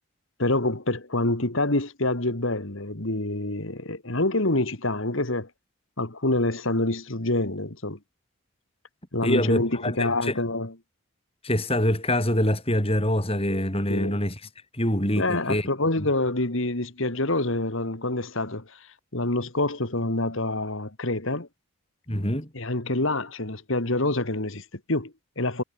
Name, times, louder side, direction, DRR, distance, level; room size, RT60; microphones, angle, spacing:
voice 1, 0.4-5.5 6.0-8.0 9.1-10.7 13.9-14.2 15.1-18.9 19.1-21.5 22.5-25.6, left 2 dB, 60° left, 2.4 m, -26 dB
voice 2, 9.2-10.4 11.4-14.4 14.8-15.7 22.1-22.5, left 1 dB, 25° left, 6.9 m, -25 dB
head